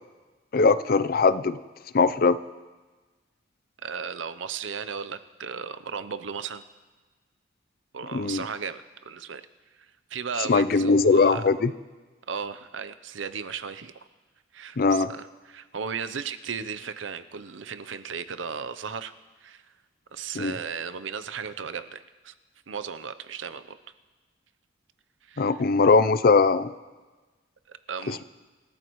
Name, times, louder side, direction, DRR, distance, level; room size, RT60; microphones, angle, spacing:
voice 1, 0.5-1.6 1.9-2.4 8.1-8.4 10.5-11.7 14.8-15.1 20.3-20.6 25.4-26.7 28.1-28.2, left 4 dB, 50° left, 14 dB, 0.5 m, -20 dB
voice 2, 3.8-6.6 7.9-9.4 10.1-11.4 12.3-13.9 14.5-19.1 19.4-19.6 20.1-22.3 22.7-23.8 25.3-25.5 27.9-28.2, right 6 dB, 85° right, 11 dB, 0.7 m, -35 dB
27.0 x 13.5 x 3.1 m, 1.3 s
head